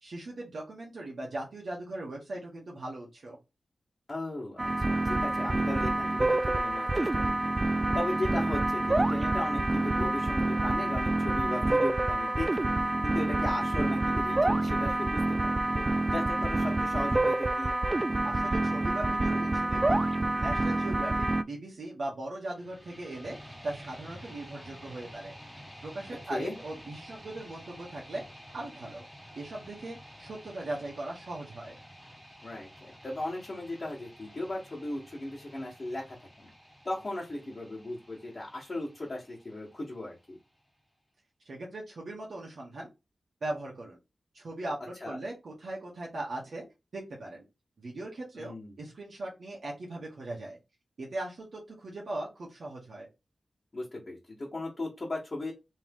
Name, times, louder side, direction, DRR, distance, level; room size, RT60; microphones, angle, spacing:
voice 1, 0.0-3.4 18.2-20.0 20.3-25.3 25.8-28.2 28.5-29.0 29.3-31.8 41.4-42.9 43.4-44.0 44.3-46.6 46.9-47.4 47.8-50.6 51.0-53.1, right 2 dB, 70° right, -3 dB, 1.5 m, -39 dB
voice 2, 4.1-7.2 7.9-15.8 16.1-17.7 26.3-26.6 32.4-36.5 36.8-40.4 45.0-45.2 48.4-48.7 53.7-55.5, left 1 dB, 35° left, -6 dB, 1.6 m, -37 dB
sound 1, 4.6-21.4, right 2 dB, 25° right, 0.3 m, -27 dB
sound 2, 22.5-40.5, equal, 5° left, 1.4 m, -51 dB
3.5 x 3.2 x 3.6 m, 0.24 s
wide cardioid pair, 115°, 0 cm